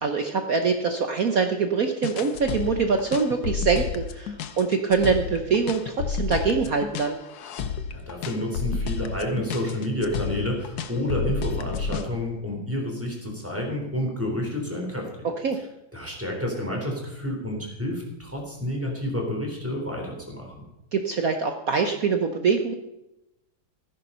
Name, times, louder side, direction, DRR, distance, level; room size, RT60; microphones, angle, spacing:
voice 1, 0.0-7.2 15.2-15.6 20.9-22.7, right 5 dB, 55° right, 5 dB, 1.2 m, -24 dB
sound 1, 2.0-12.1, left 5 dB, 60° left, 1.2 m, -31 dB
voice 2, 7.6-15.1 15.9-20.6, left 1 dB, 5° right, 0 dB, 3.6 m, -30 dB
14.0 x 10.5 x 5.6 m, 0.90 s
omnidirectional pair, 2.2 m